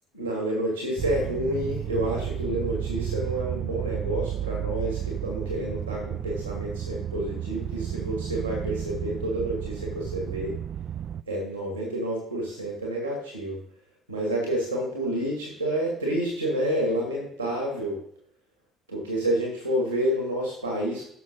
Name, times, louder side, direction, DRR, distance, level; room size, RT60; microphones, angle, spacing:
voice 1, 0.1-10.5 11.3-13.6 14.1-18.0 18.9-21.1, right 1 dB, 90° right, -1 dB, 2.2 m, -29 dB
sound 1, 1.0-11.2, right 11 dB, 50° right, 0.4 m, -32 dB
15.5 x 6.2 x 4.1 m, 0.67 s
figure-of-eight pair, 50°, 0 cm